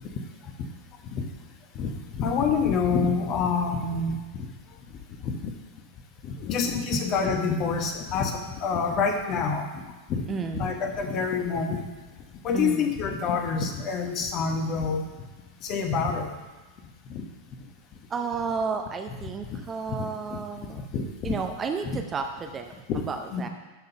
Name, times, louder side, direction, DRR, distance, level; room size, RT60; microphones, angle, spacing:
voice 1, 1.7-4.2 5.2-5.5 6.2-10.2 10.5-11.9 12.4-15.1 15.6-16.3 17.1-17.2 19.5-19.6 20.3-20.4 20.7-21.3 21.8-22.0 22.9-23.0 23.3-23.5, left 5 dB, 35° left, 4 dB, 1.1 m, -27 dB
voice 2, 10.3-10.7 12.5-12.9 18.1-20.8 21.2-22.7 23.1-23.5, right 5 dB, 20° right, 5 dB, 0.7 m, -32 dB
11.5 x 3.9 x 5.5 m, 1.2 s
figure-of-eight pair, 90°, 0 cm